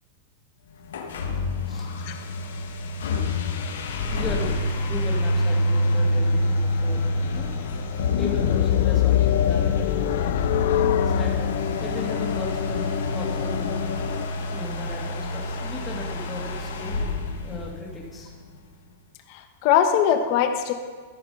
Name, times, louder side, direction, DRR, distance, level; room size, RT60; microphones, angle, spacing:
sound 1, 0.8-18.3, left 1 dB, 90° left, 1.2 m, -27 dB
voice 1, 4.1-4.5 4.8-7.5 8.2-10.3 11.2-14.0 14.5-17.0 17.4-18.3, left 2 dB, 15° left, -2 dB, 2.3 m, -37 dB
sound 2, 8.0-14.2, left 12 dB, 70° left, 0.5 m, -24 dB
voice 2, 19.3-20.7, left 9 dB, 50° left, 7 dB, 1.2 m, -21 dB
14.5 x 5.9 x 5.5 m, 1.4 s
supercardioid pair, 145°, 0 cm